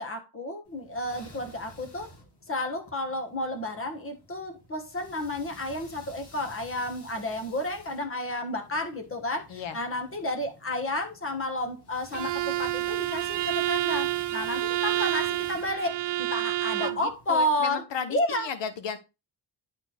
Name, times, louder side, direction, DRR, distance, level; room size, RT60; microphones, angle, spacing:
voice 1, 0.0-2.1 2.5-17.8 18.1-18.5, left 1 dB, 30° left, 1.5 m, -31 dB
sound 1, 0.7-17.4, left 1 dB, 70° left, 2.9 m, -52 dB
Bowed string instrument, 12.1-17.1, right 15 dB, 70° right, 0.6 m, -29 dB
voice 2, 16.8-19.0, left 7 dB, 85° left, 1.0 m, -34 dB
10.5 x 4.4 x 3.4 m
wide cardioid pair, 125°, 43 cm